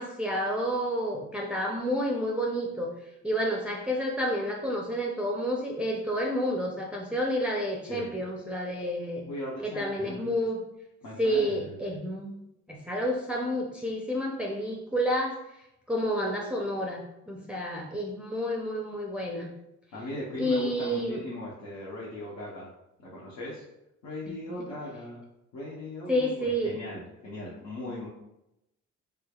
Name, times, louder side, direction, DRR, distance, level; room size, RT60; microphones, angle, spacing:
voice 1, 0.0-2.9 3.2-9.2 9.6-10.6 11.2-12.3 12.7-15.4 15.9-19.5 20.4-21.2 24.3-24.6 26.1-26.8, equal, 5° right, -1 dB, 0.4 m, -30 dB
voice 2, 9.3-10.4 11.0-11.8 19.9-22.7 23.0-23.6 24.0-25.2 25.5-28.1, left 1 dB, 80° left, -7 dB, 0.9 m, -38 dB
3.4 x 3.2 x 2.3 m, 0.87 s
cardioid pair, 90°, 30 cm